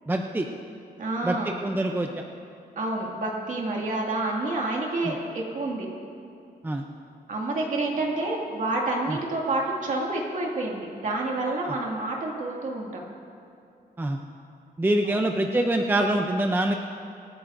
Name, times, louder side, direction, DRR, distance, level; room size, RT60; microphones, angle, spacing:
voice 1, 0.1-0.5 1.2-1.4 1.6-2.1 5.0-5.1 6.6-6.8 9.1-9.2 11.6-11.7 14.0-14.2 14.8-16.7, right 1 dB, 10° right, 3 dB, 0.6 m, -25 dB
voice 2, 1.0-1.6 2.8-5.9 7.3-13.0 15.0-15.2, right 2 dB, 50° right, -1 dB, 2.1 m, -28 dB
25.5 x 9.6 x 2.6 m, 2.6 s
wide cardioid pair, 135°, 17 cm